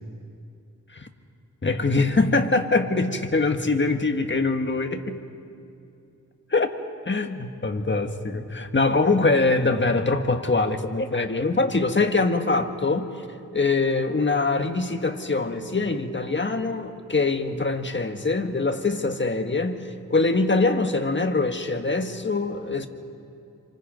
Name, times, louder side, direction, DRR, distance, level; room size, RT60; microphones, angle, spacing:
voice 1, 1.6-5.2 6.5-6.7 7.1-13.1 13.5-19.8 20.1-22.9, left 3 dB, 35° left, 6 dB, 1.6 m, -23 dB
28.0 x 25.5 x 5.2 m, 2.6 s
wide cardioid pair, 90°, 34 cm